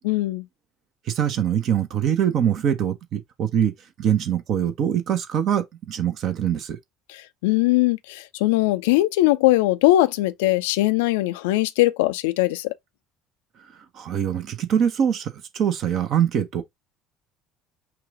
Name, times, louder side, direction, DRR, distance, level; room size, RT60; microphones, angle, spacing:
voice 1, 0.0-0.5 7.1-12.7, left 17 dB, 70° left, 0.4 m, -20 dB
voice 2, 1.1-3.7 4.0-6.8 13.9-16.6, right 9 dB, 50° right, 0.9 m, -23 dB
5.9 x 2.4 x 3.8 m
figure-of-eight pair, 60°, 0 cm